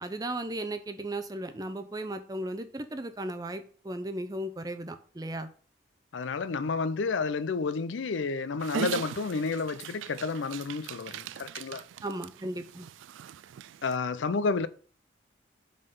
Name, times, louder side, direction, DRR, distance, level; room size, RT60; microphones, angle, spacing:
voice 1, 0.0-5.5 12.0-12.9, right 1 dB, 20° right, 0.5 m, -36 dB
voice 2, 6.1-11.8 13.8-14.7, left 4 dB, 85° left, 0.5 m, -30 dB
Dog, 8.6-13.9, right 9 dB, 90° right, 0.3 m, -39 dB
5.4 x 3.9 x 5.4 m
head